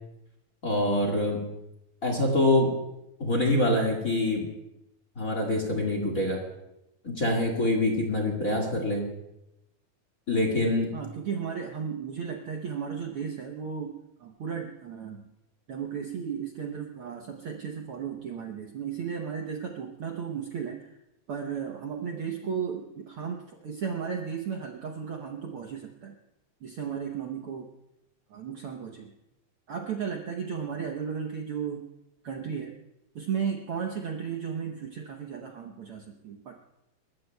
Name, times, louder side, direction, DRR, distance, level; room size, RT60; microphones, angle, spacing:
voice 1, 0.6-1.5 2.0-2.7 3.2-4.5 5.2-6.4 7.0-9.1 10.3-10.9, left 1 dB, 30° left, 0 dB, 1.9 m, -25 dB
voice 2, 10.9-15.3 15.7-20.9 21.3-26.2 26.6-27.7 28.3-29.1 29.7-31.8 32.2-32.7 33.1-36.6, right 7 dB, 65° right, 2 dB, 1.4 m, -35 dB
29.5 x 14.0 x 2.3 m, 0.89 s
omnidirectional pair, 3.6 m